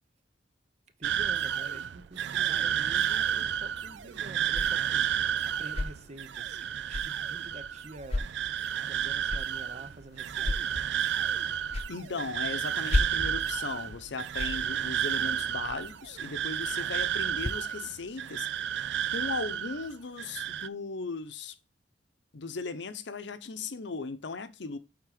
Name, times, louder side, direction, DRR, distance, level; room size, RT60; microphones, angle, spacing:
voice 1, 1.0-5.0 5.4-8.3 8.8-10.8, right 2 dB, 35° right, 0.8 m, -47 dB
sound 1, 1.0-19.9 20.2-20.7, right 9 dB, 65° right, 0.4 m, -31 dB
sound 2, 3.4-17.5, left 2 dB, 35° left, 0.8 m, -38 dB
voice 2, 11.9-18.5 19.1-21.5 22.3-24.8, left 4 dB, 65° left, 0.7 m, -37 dB
8.3 x 3.7 x 5.0 m
head